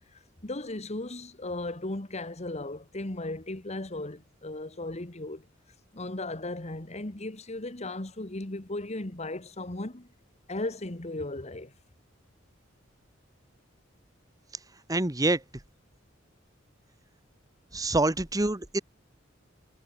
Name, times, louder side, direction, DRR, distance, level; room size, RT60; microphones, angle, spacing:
voice 1, 0.1-5.5 5.9-10.1 10.5-11.7, left 2 dB, 35° left, 1.7 m, -36 dB
voice 2, 14.9-15.4 17.7-18.8, right 2 dB, 20° right, 1.3 m, -26 dB
head